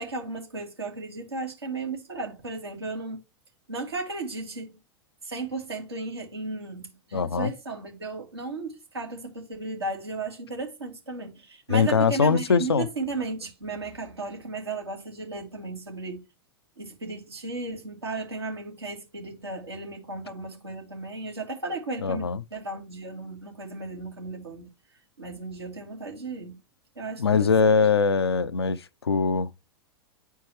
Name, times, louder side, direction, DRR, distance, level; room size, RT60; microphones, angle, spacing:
voice 1, 0.0-3.2 3.7-4.7 5.2-16.2 16.8-24.7 25.2-26.6 27.0-27.7, right 3 dB, 85° right, 2.5 m, -35 dB
voice 2, 7.1-7.5 11.7-12.9 22.0-22.4 27.2-29.5, left 5 dB, 85° left, 0.5 m, -22 dB
9.4 x 4.5 x 3.1 m
figure-of-eight pair, 100°, 13 cm